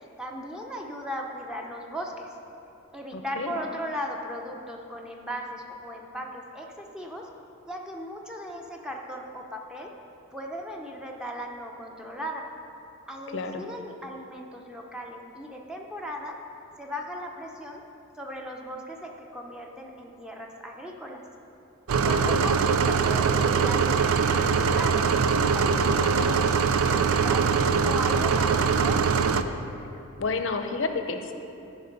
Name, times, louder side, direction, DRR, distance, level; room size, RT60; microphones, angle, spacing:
voice 1, 0.2-2.4 2.9-7.3 7.7-9.9 10.3-12.5 13.1-16.4 16.8-17.8 18.2-21.2 22.0-24.0 24.3-27.5 27.8-29.0, equal, 5° right, 0 dB, 0.6 m, -37 dB
voice 2, 3.1-3.6 13.3-13.6 22.0-22.4 30.2-31.3, left 4 dB, 60° left, 7 dB, 0.6 m, -30 dB
sound 1, 21.9-29.4, right 5 dB, 85° right, 0.4 m, -22 dB
13.0 x 5.2 x 5.2 m, 2.8 s
head